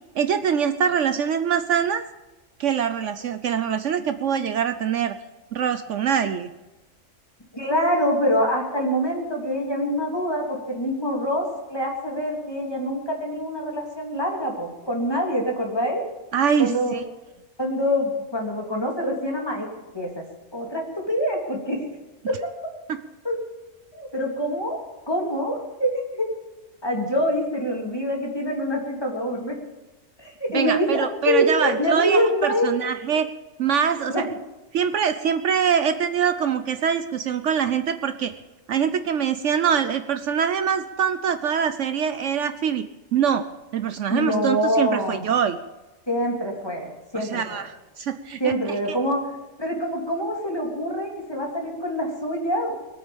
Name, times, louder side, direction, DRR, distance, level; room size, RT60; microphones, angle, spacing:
voice 1, 0.2-2.0 2.6-5.2 5.5-6.5 16.3-17.0 22.9-23.0 30.5-33.3 33.6-34.3 34.7-38.3 38.7-42.8 43.1-43.5 43.7-45.6 47.1-48.5 48.9-49.0, right 7 dB, 70° right, 10 dB, 1.0 m, -24 dB
voice 2, 7.5-16.0 16.6-17.0 17.6-19.7 19.9-20.2 20.5-21.8 22.3-22.4 23.2-23.3 23.9-24.8 25.1-26.3 26.8-29.5 30.2-32.7 34.1-34.2 44.1-45.2 46.1-47.4 48.4-49.2 49.6-52.7, equal, 20° left, -1 dB, 3.2 m, -25 dB
21.5 x 8.8 x 7.2 m, 1.1 s
omnidirectional pair, 1.4 m